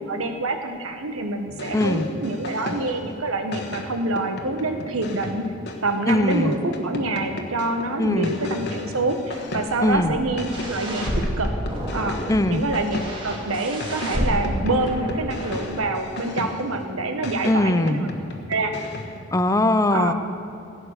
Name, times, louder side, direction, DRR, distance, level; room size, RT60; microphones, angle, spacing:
voice 1, 0.1-5.4 5.8-11.1 11.4-11.5 11.9-12.2 12.5-18.1 18.5-18.7 19.9-20.1, right 2 dB, 75° right, 6 dB, 1.2 m, -26 dB
sound 1, 1.5-3.1 3.5-10.0 10.4-13.4 13.8-16.8 17.2-19.3, left 2 dB, 55° left, 1.3 m, -35 dB
voice 2, 1.7-2.1 6.1-6.6 8.0-8.3 9.8-10.2 12.3-12.6 17.5-18.0 19.3-20.1, left 1 dB, 15° left, 11 dB, 0.5 m, -20 dB
sound 2, 9.3-15.6, equal, 25° right, 2.3 m, -30 dB
16.0 x 9.1 x 6.6 m, 2.6 s
head